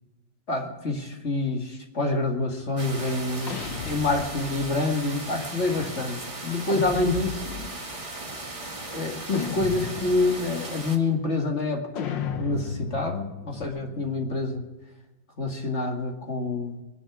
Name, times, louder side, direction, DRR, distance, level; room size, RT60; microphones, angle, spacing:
voice 1, 0.5-3.5 3.8-7.7 8.9-14.6 15.4-16.8, left 2 dB, 35° left, 2 dB, 2.2 m, -27 dB
sound 1, 2.8-11.0, right 2 dB, 15° right, 1.7 m, -37 dB
sound 2, 3.5-4.8 6.7-7.8 9.3-10.4 12.0-14.6, left 7 dB, 70° left, 1.7 m, -34 dB
24.0 x 10.5 x 4.8 m, 1.1 s
omnidirectional pair, 2.1 m